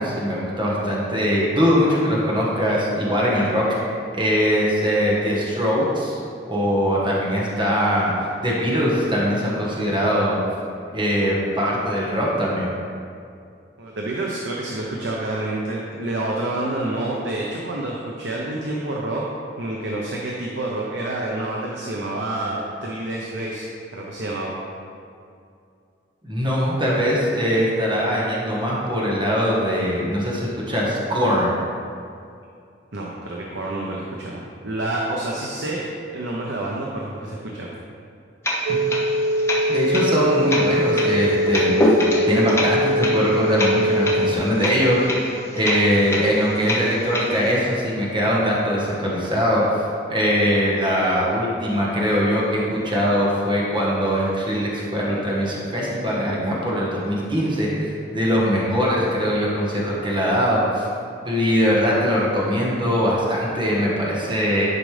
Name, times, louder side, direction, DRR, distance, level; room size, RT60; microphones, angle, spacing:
voice 1, 0.0-3.6 4.1-6.2 6.5-10.4 10.9-12.7 26.2-31.5 39.7-41.8 42.3-49.6 50.1-60.9 61.2-64.7, equal, 25° right, -5 dB, 1.3 m, -21 dB
voice 2, 13.8-19.2 19.6-23.6 23.9-24.6 32.9-35.8 36.1-37.7, right 2 dB, 85° right, -3 dB, 0.8 m, -28 dB
sound 1, 38.4-47.6, left 1 dB, 15° left, 1.0 m, -26 dB
sound 2, 38.7-44.3, equal, 50° right, 0.5 m, -22 dB
10.5 x 5.1 x 3.3 m, 2.4 s
head